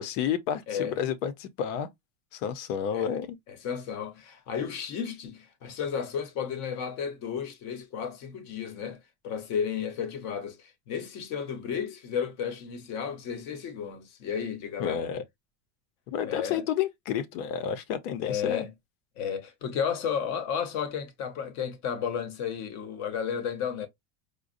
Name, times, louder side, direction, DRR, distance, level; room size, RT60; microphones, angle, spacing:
voice 1, 0.0-1.9 2.3-3.4 14.8-15.2 16.1-18.7, left 9 dB, 70° left, 0.9 m, -30 dB
voice 2, 2.9-3.2 3.5-15.0 16.2-16.7 18.2-18.7 19.2-23.9, left 7 dB, 45° left, 0.9 m, -33 dB
5.1 x 2.3 x 2.5 m
cardioid pair, 170°, 39 cm